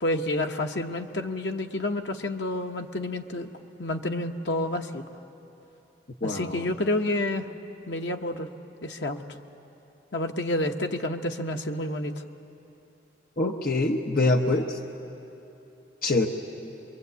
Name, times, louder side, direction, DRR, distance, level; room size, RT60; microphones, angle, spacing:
voice 1, 0.0-3.5 3.8-5.0 6.2-7.5 7.9-8.5 8.8-9.2 10.1-12.2, left 1 dB, 80° left, 4 dB, 1.1 m, -29 dB
voice 2, 6.2-6.7 13.4-14.8 16.0-16.3, left 2 dB, 50° left, 2 dB, 1.0 m, -24 dB
25.0 x 22.5 x 8.2 m, 3.0 s
head